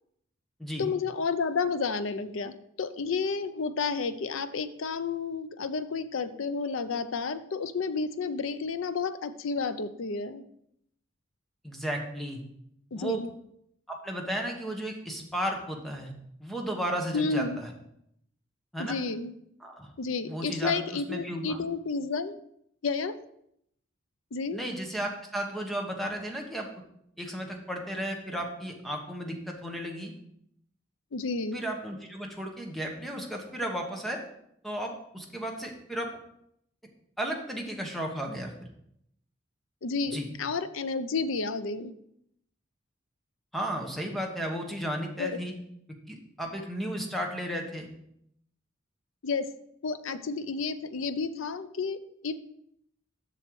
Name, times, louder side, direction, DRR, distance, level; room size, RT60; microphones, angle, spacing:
voice 1, 0.8-10.4 12.9-13.3 17.1-17.6 18.8-19.3 20.0-22.4 22.8-23.2 24.3-24.6 31.1-31.6 39.8-41.9 45.2-45.3 49.2-49.5 49.8-52.3, left 4 dB, 75° left, 12 dB, 0.6 m, -31 dB
voice 2, 11.6-12.4 12.9-13.3 13.9-16.1 16.4-17.7 18.7-19.0 19.6-19.9 20.2-21.6 24.5-26.7 27.2-30.1 31.5-34.2 34.6-36.1 37.2-38.5 40.1-40.3 43.5-45.5 46.1-47.9, right 1 dB, ahead, 1 dB, 1.1 m, -34 dB
7.6 x 6.3 x 4.7 m, 0.74 s
head